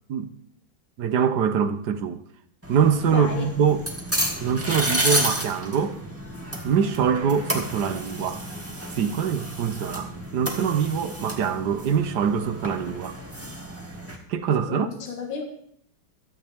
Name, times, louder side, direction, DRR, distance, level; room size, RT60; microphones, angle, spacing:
voice 1, 1.0-2.2 2.7-3.8 4.4-6.0 6.6-8.4 8.9-13.2 14.3-14.9, right 7 dB, 65° right, 1.3 m, -24 dB
sound 1, 2.6-14.2, right 1 dB, 5° right, 2.1 m, -31 dB
voice 2, 3.1-3.5 14.7-15.4, left 5 dB, 80° left, 2.4 m, -32 dB
16.0 x 14.0 x 3.5 m
omnidirectional pair, 2.2 m